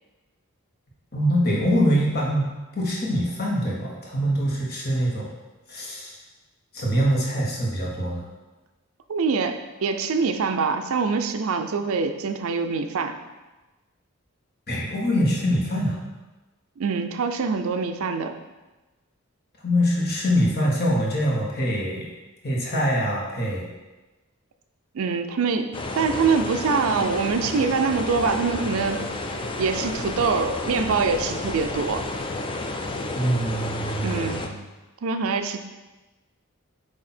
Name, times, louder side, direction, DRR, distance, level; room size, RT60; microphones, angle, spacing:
voice 1, 1.1-5.3 5.7-6.1 6.7-8.2 14.7-16.0 19.6-22.0 22.4-23.7 33.1-34.6, equal, 45° left, -3 dB, 1.3 m, -24 dB
voice 2, 9.1-13.2 16.8-18.3 24.9-29.0 29.6-32.1 34.0-34.5 35.0-35.6, right 4 dB, 70° right, 8 dB, 0.4 m, -24 dB
sound 1, 25.7-34.5, left 2 dB, 25° left, 0.4 m, -31 dB
8.1 x 2.8 x 4.3 m, 1.1 s
head